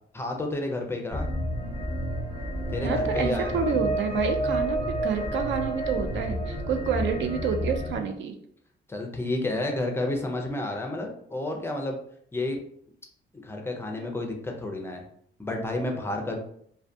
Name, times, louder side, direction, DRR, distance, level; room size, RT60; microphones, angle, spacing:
voice 1, 0.1-1.3 2.7-3.7 8.9-12.0 12.3-12.6 13.3-15.0 15.4-16.4, left 2 dB, 10° left, 2 dB, 0.4 m, -31 dB
sound 1, 1.1-8.0, right 1 dB, 10° right, 1.0 m, -30 dB
voice 2, 2.8-8.3, right 6 dB, 65° right, 6 dB, 0.4 m, -28 dB
2.3 x 2.2 x 2.6 m, 0.66 s
cardioid pair, 115°, 21 cm